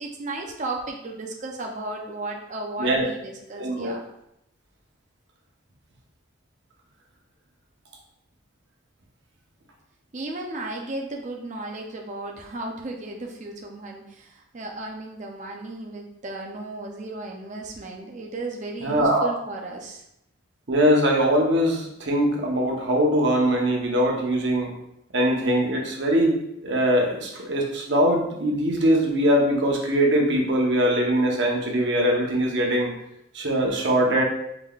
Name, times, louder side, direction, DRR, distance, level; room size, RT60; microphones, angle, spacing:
voice 1, 0.0-4.1 10.1-20.0, right 2 dB, 35° right, 1 dB, 0.4 m, -35 dB
voice 2, 3.6-4.0 18.8-19.3 20.7-24.7 25.1-32.9 33.3-34.2, equal, 60° right, 0 dB, 0.8 m, -22 dB
4.8 x 3.6 x 2.3 m, 0.81 s
head